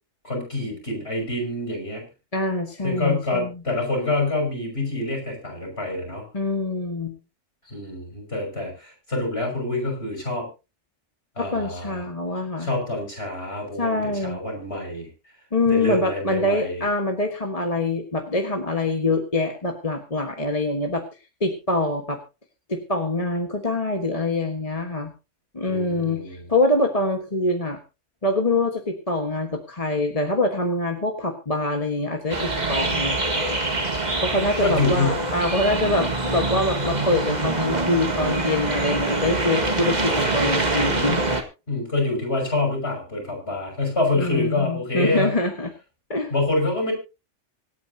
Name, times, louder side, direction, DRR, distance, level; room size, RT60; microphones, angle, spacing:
voice 1, 0.2-2.0 2.8-6.2 7.7-10.5 11.4-12.0 12.6-15.1 15.7-16.8 25.7-26.5 34.6-35.1 41.7-45.3 46.3-46.9, left 2 dB, 60° left, 2 dB, 6.4 m, -26 dB
voice 2, 2.3-3.5 6.3-7.2 11.4-12.7 13.8-14.4 15.5-21.0 21.4-22.2 22.7-25.1 25.5-27.8 28.2-33.2 34.2-41.2 44.2-45.7 46.1-46.3, left 2 dB, 30° left, 3 dB, 1.5 m, -24 dB
sound 1, 32.3-41.4, right 2 dB, 35° right, 1.9 m, -24 dB
25.0 x 9.3 x 2.8 m, 0.29 s
omnidirectional pair, 1.2 m